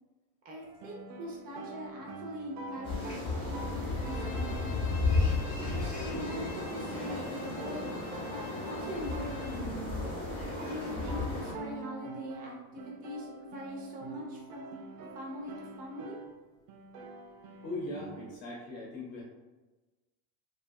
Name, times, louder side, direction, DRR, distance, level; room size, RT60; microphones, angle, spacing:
voice 1, 0.4-4.9 5.6-7.9 8.3-9.8 10.6-14.7 15.1-16.2, equal, 20° right, -2 dB, 0.4 m, -42 dB
sound 1, 0.6-16.4 16.7-18.4, right 4 dB, 80° right, 0.5 m, -46 dB
sound 2, 2.8-11.5, left 3 dB, 15° left, 0.7 m, -34 dB
Bowed string instrument, 4.0-9.6, left 5 dB, 80° left, 0.7 m, -49 dB
voice 2, 17.6-19.2, left 2 dB, 45° left, -4 dB, 0.8 m, -39 dB
2.6 x 2.3 x 2.5 m, 1.2 s
supercardioid pair, 155°, 41 cm